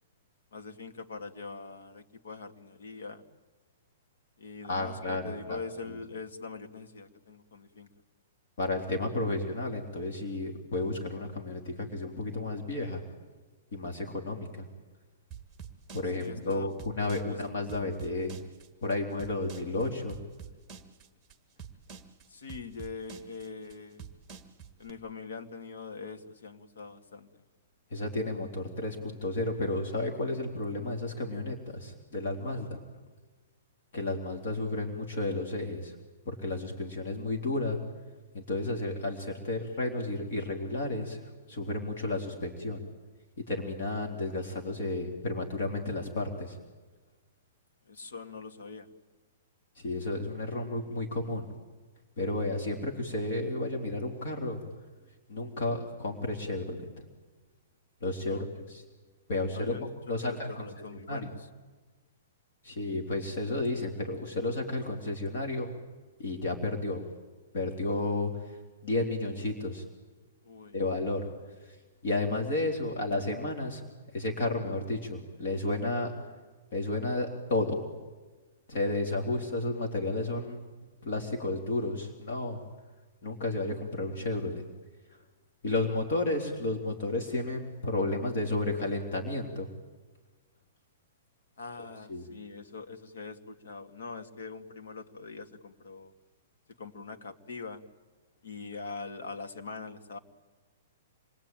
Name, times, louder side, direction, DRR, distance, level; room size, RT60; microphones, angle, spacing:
voice 1, 0.5-3.2 4.4-7.9 16.1-16.7 17.3-17.4 22.3-24.1 24.8-27.3 32.4-32.7 47.9-48.9 58.2-58.5 59.5-59.9 60.2-61.5 70.4-70.8 91.6-96.1 96.8-97.8 98.4-100.2, left 4 dB, 85° left, 6 dB, 2.3 m, -43 dB
voice 2, 4.7-5.6 8.6-13.0 13.7-14.7 15.9-18.4 18.8-20.2 27.9-32.8 33.9-36.0 36.2-37.8 38.3-42.8 43.5-46.6 49.8-51.5 52.2-54.6 55.3-57.0 58.0-58.8 59.3-59.7 60.1-60.5 61.1-61.2 62.6-65.7 66.2-67.0 67.5-68.5 68.8-69.8 70.7-71.3 71.6-71.8 72.0-73.8 74.1-76.1 76.7-77.8 78.7-80.6 81.0-82.6 83.2-84.6 85.6-89.7 91.8-92.2, left 2 dB, 50° left, 2 dB, 3.3 m, -32 dB
sound 1, 15.3-24.9, right 7 dB, 5° right, 1.8 m, -47 dB
27.0 x 22.5 x 9.1 m, 1.3 s
hypercardioid pair, 175°, 0 cm